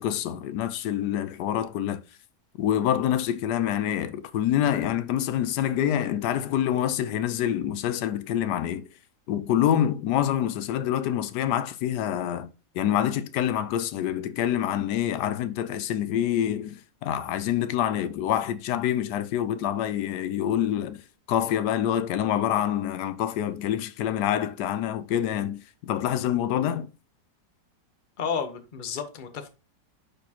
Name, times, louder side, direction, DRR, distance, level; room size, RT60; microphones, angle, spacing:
voice 1, 0.0-2.0 2.6-8.9 9.3-12.5 12.7-21.0 21.3-26.9, left 10 dB, 90° left, 1.2 m, -26 dB
voice 2, 28.2-29.5, left 6 dB, 35° left, 0.9 m, -31 dB
10.5 x 4.3 x 2.8 m
omnidirectional pair, 1.7 m